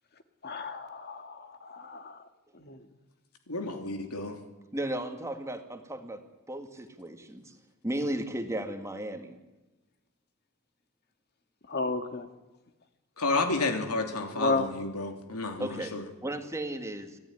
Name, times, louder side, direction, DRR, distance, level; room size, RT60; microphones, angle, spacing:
voice 1, 0.4-2.2 2.5-2.8 11.7-12.3 14.3-14.7, left 3 dB, 45° left, 7 dB, 1.9 m, -32 dB
voice 2, 3.5-4.3 13.2-16.0, left 3 dB, 80° left, 5 dB, 3.1 m, -31 dB
voice 3, 4.7-6.2 6.5-7.5 7.8-9.4 15.6-15.9 16.2-17.2, right 1 dB, 15° right, 5 dB, 2.0 m, -35 dB
25.5 x 16.0 x 9.9 m, 1.1 s
head